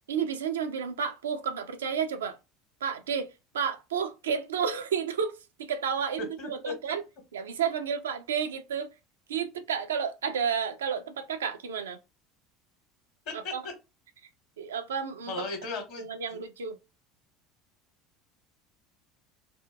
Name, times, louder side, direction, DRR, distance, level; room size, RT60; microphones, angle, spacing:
voice 1, 0.1-2.4 2.8-3.3 3.5-7.0 7.3-8.9 9.3-12.0 13.3-13.6 14.6-15.3 16.0-16.8, right 7 dB, 70° right, 0.4 m, -31 dB
voice 2, 6.2-6.9 13.2-13.5 15.3-16.0 16.3-16.4, left 3 dB, 55° left, 1.2 m, -37 dB
2.7 x 2.4 x 2.5 m
figure-of-eight pair, 70°, 0 cm